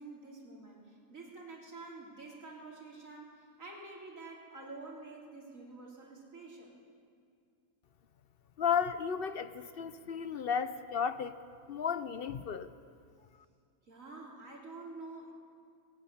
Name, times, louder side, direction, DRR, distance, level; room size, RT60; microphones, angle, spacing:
voice 1, 0.0-6.8 13.8-15.3, right 3 dB, 60° right, -2 dB, 3.9 m, -48 dB
voice 2, 8.6-11.4 11.7-12.7, left 7 dB, 50° left, 12 dB, 0.7 m, -33 dB
19.0 x 16.0 x 9.8 m, 2.3 s
omnidirectional pair, 1.6 m